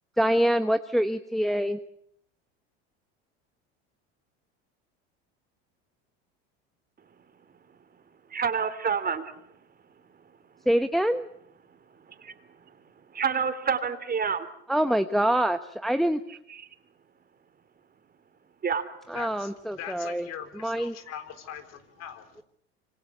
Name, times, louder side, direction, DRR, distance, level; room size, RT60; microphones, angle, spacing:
voice 1, 0.2-1.8 10.7-11.3 14.7-16.2 19.1-20.3 20.6-20.9, equal, ahead, 9 dB, 1.0 m, -25 dB
voice 2, 8.3-9.4 12.1-12.4 13.1-14.5 16.5-16.7 18.6-18.8, right 6 dB, 30° right, 10 dB, 3.1 m, -28 dB
voice 3, 19.1-22.4, left 9 dB, 55° left, 9 dB, 3.8 m, -41 dB
26.5 x 25.0 x 7.1 m, 0.72 s
supercardioid pair, 100°, 31 cm